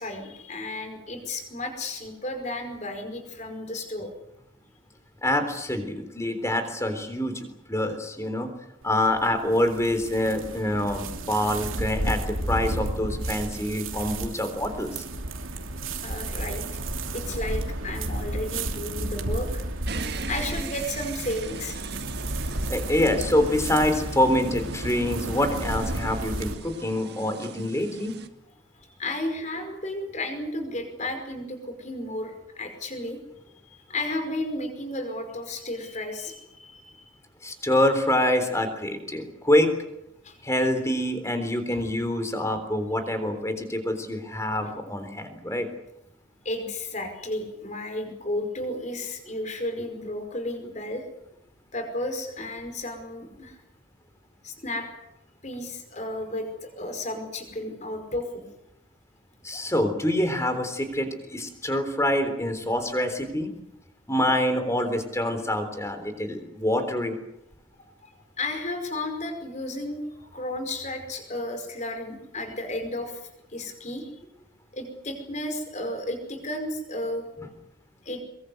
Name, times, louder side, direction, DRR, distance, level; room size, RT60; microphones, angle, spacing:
voice 1, 0.0-4.1 16.0-16.6 17.1-19.6 20.3-21.8 28.8-33.2 33.6-37.1 40.2-40.4 41.7-41.8 43.2-43.3 43.6-43.8 44.6-44.7 46.4-51.0 51.7-53.6 54.4-54.9 55.4-58.4 68.0-68.1 68.4-73.2 73.5-74.1 74.7-77.3 78.0-78.2, left 1 dB, 35° left, 6 dB, 5.1 m, -33 dB
voice 2, 5.2-8.5 8.8-15.0 22.7-28.1 37.4-39.7 40.4-45.7 59.4-63.5 64.1-67.2, left 1 dB, 15° left, 8 dB, 3.7 m, -26 dB
sound 1, 8.8-26.5, right 2 dB, 80° right, 2.8 m, -32 dB
sound 2, 19.9-28.3, right 4 dB, 55° right, 1.9 m, -40 dB
23.5 x 23.0 x 7.9 m, 0.81 s
head